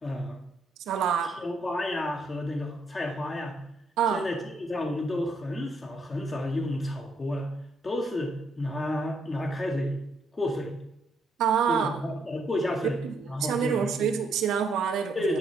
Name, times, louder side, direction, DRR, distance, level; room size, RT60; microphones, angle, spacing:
voice 1, 0.0-0.4 1.2-3.6 4.1-7.5 7.8-10.0 10.3-10.7 11.7-13.0 13.3-14.1 15.2-15.4, left 1 dB, 25° left, 1 dB, 2.0 m, -31 dB
voice 2, 0.9-1.3 4.0-4.3 11.4-11.9 13.0-13.1 13.4-15.4, right 8 dB, 85° right, 5 dB, 1.3 m, -26 dB
10.5 x 10.0 x 3.5 m, 0.80 s
cardioid pair, 90°, 0 cm